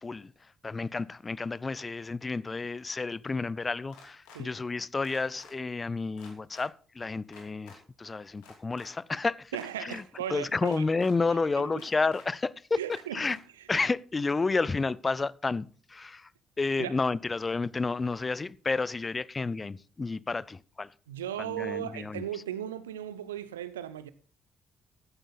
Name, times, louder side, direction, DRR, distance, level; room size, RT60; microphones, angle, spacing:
voice 1, 0.0-0.3 0.6-9.5 9.8-10.0 10.3-12.8 13.1-13.4 13.7-16.3 16.6-20.9 21.4-22.3, left 3 dB, 30° left, 0.5 m, -31 dB
sound 1, 3.9-4.4 5.0-5.5 6.2-6.7 7.3-7.8 8.4-8.9 9.5-10.0 10.7-11.1 11.8-12.3 12.9-13.4, left 4 dB, 70° left, 2.9 m, -51 dB
voice 2, 9.5-10.8 11.6-11.7 12.8-13.2 16.8-16.9 21.1-24.1, right 11 dB, 80° right, 0.6 m, -36 dB
14.5 x 10.0 x 4.0 m
figure-of-eight pair, 45°, 0 cm